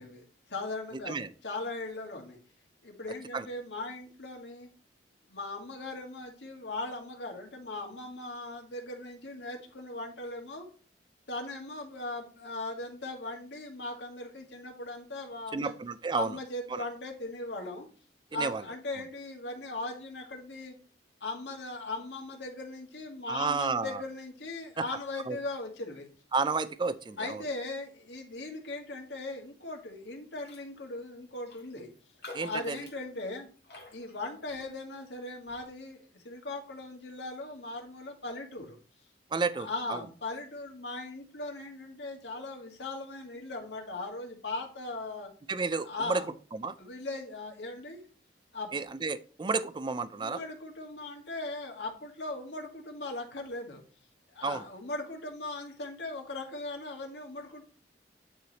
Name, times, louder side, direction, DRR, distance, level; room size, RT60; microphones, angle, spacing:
voice 1, 0.0-1.2 1.4-2.4 2.8-4.7 5.3-10.7 11.3-15.8 16.1-17.9 18.3-20.8 21.2-26.1 27.2-31.9 32.4-33.5 33.9-38.8 39.5-45.3 45.8-46.3 46.8-48.1 48.5-48.7 50.2-53.8 54.3-57.6, left 2 dB, 85° left, 1 dB, 1.7 m, -39 dB
voice 2, 15.5-16.4 16.7-16.8 18.3-18.6 23.3-24.0 24.8-24.9 25.3-25.4 26.3-27.4 32.3-32.8 39.3-40.0 45.5-46.2 46.5-46.8 48.7-50.4 54.4-54.6, right 4 dB, 25° right, 14 dB, 0.4 m, -31 dB
Raindrop, 30.4-30.7 31.0-31.1 31.4-35.0 35.5-35.7, left 2 dB, 65° left, 1.6 m, -50 dB
9.3 x 3.3 x 4.0 m, 0.39 s
head